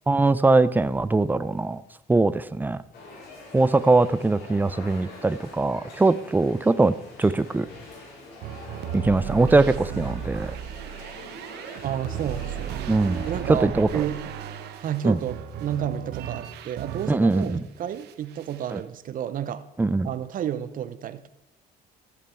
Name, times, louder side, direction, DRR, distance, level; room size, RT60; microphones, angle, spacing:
voice 1, 0.1-1.8 2.1-2.8 3.5-7.7 8.9-10.6 12.9-14.0 15.0-15.2 17.1-17.6 18.7-18.8 19.8-20.1, right 3 dB, 10° right, 0.5 m, -21 dB
sound 1, 2.9-13.4, left 2 dB, 75° left, 4.6 m, -45 dB
sound 2, 8.4-17.6 17.9-18.7, right 9 dB, 75° right, 1.0 m, -35 dB
voice 2, 11.8-12.8 13.2-14.2 14.8-19.6 20.0-21.3, right 10 dB, 55° right, 0.9 m, -31 dB
14.0 x 7.3 x 4.5 m
cardioid pair, 110°, 17 cm